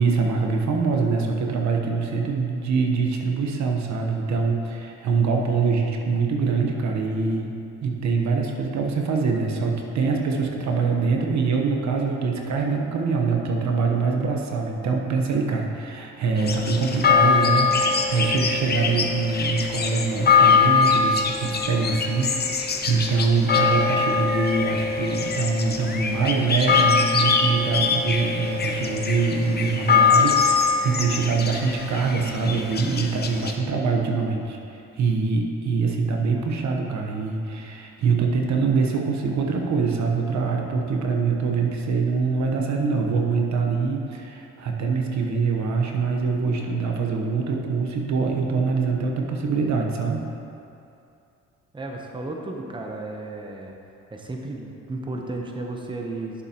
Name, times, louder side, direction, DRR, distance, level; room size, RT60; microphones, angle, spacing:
voice 1, 0.0-7.5 7.8-50.3, right 4 dB, 65° right, 1 dB, 1.0 m, -24 dB
sound 1, 16.4-33.5, left 5 dB, 35° left, 0.7 m, -22 dB
voice 2, 51.7-53.7 54.1-56.4, right 2 dB, 15° right, 1 dB, 0.8 m, -33 dB
11.0 x 7.0 x 2.9 m, 2.7 s
cardioid pair, 90°, 30 cm